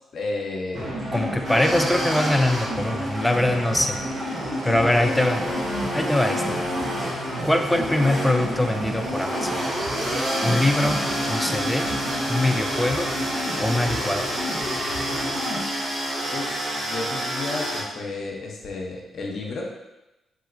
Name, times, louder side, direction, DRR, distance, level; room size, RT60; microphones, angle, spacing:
voice 1, 0.1-1.0 1.5-1.8 4.7-5.6 6.5-6.6 16.3-19.6, left 3 dB, 60° left, -1 dB, 0.7 m, -33 dB
sound 1, 0.7-15.6, equal, 65° right, 1.4 m, -31 dB
voice 2, 1.1-4.0 4.6-5.4 5.9-6.6 7.4-9.6 10.4-11.0 11.3-11.9 12.3-13.1 13.6-14.3, left 1 dB, 10° left, 5 dB, 0.3 m, -23 dB
sound 2, 1.4-17.8, equal, 50° right, 1.2 m, -29 dB
2.9 x 2.8 x 2.5 m, 0.97 s
hypercardioid pair, 40°, 0 cm